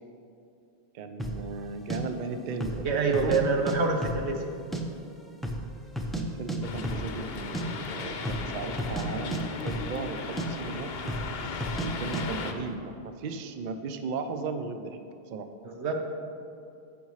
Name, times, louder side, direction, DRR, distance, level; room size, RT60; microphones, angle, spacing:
voice 1, 0.9-2.9 3.2-3.4 6.1-11.0 11.8-15.0 15.3-15.5, right 4 dB, 55° right, 7 dB, 0.6 m, -36 dB
sound 1, 1.2-1.4 1.9-2.0 2.5-2.8 3.1-3.8 4.0-4.8 5.1-5.2 5.4-6.2 6.5-6.6 6.8-7.1 7.4-7.7 8.2-8.5 8.8-10.1 10.4-10.5 11.1-11.3 11.6-11.9 12.1-12.3, right 1 dB, ahead, 0.4 m, -32 dB
voice 2, 2.8-4.4 15.6-15.9, right 4 dB, 90° right, 3 dB, 1.2 m, -26 dB
sound 2, 6.6-12.5, left 4 dB, 70° left, 0.9 m, -36 dB
14.0 x 5.0 x 3.2 m, 2.6 s
omnidirectional pair, 1.1 m